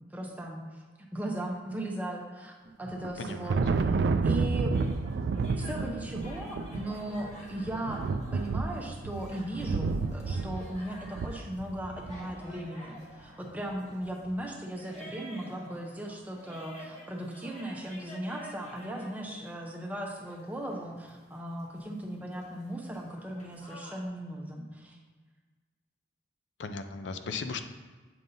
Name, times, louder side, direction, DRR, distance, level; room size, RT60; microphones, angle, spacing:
voice 1, 0.1-0.8 1.1-4.7 5.5-25.0, right 1 dB, 10° right, 0 dB, 0.7 m, -37 dB
Thunder, 2.9-12.3, right 4 dB, 70° right, 0.3 m, -31 dB
voice 2, 3.2-3.9 26.6-27.6, left 4 dB, 85° left, 8 dB, 0.5 m, -37 dB
sound 1, 4.7-24.0, equal, 40° left, 1.2 m, -51 dB
7.7 x 5.3 x 2.7 m, 1.4 s
head